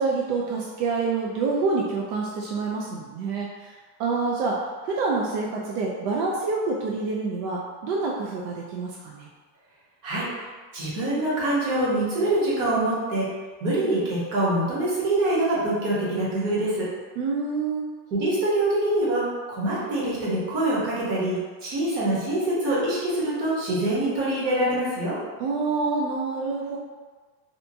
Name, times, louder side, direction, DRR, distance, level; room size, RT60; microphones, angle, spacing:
voice 1, 0.0-4.6 4.8-9.3 17.2-17.9 25.4-26.8, right 4 dB, 80° right, -3 dB, 0.6 m, -27 dB
voice 2, 10.7-13.3 13.6-16.9 18.1-25.2, right 1 dB, 45° right, -7 dB, 1.1 m, -25 dB
2.8 x 2.2 x 2.7 m, 1.4 s
supercardioid pair, 150°, 48 cm